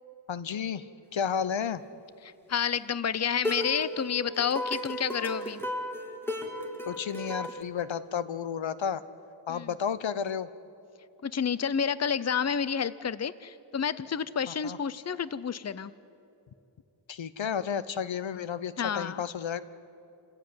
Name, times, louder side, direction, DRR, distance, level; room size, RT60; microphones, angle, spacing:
voice 1, 0.3-0.9 1.1-1.8 6.9-9.0 9.5-10.5 14.5-14.8 17.1-19.6, left 7 dB, 85° left, 15 dB, 0.8 m, -32 dB
voice 2, 2.5-5.6 9.5-9.7 11.2-15.9 18.8-19.2, left 7 dB, 35° left, 16 dB, 0.6 m, -30 dB
sound 1, 3.4-7.6, equal, 5° left, 2.3 m, -35 dB
28.0 x 15.5 x 9.5 m, 2.8 s
wide cardioid pair, 90°, 44 cm